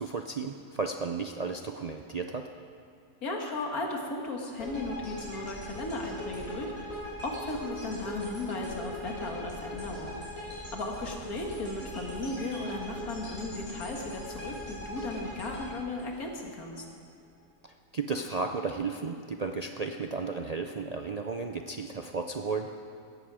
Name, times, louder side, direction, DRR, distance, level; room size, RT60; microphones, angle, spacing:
voice 1, 0.0-2.4 17.6-22.7, right 4 dB, 50° right, 4 dB, 0.4 m, -34 dB
voice 2, 3.2-10.2 10.7-16.9, left 2 dB, 90° left, 1 dB, 2.3 m, -36 dB
sound 1, 4.6-16.8, equal, 75° left, 5.3 m, -40 dB
17.5 x 14.0 x 4.9 m, 2.4 s
omnidirectional pair, 1.5 m